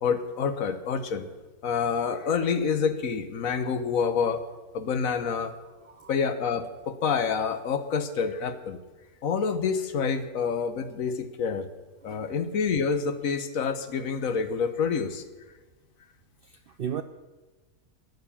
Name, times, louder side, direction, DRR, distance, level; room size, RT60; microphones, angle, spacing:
voice 1, 0.0-1.3 1.6-4.4 4.7-5.5 6.1-8.8 9.2-11.7 12.0-15.2, left 6 dB, 70° left, 1.4 m, -27 dB
voice 2, 16.4-17.0, right 9 dB, 70° right, 0.5 m, -35 dB
13.5 x 9.5 x 7.1 m
omnidirectional pair, 1.5 m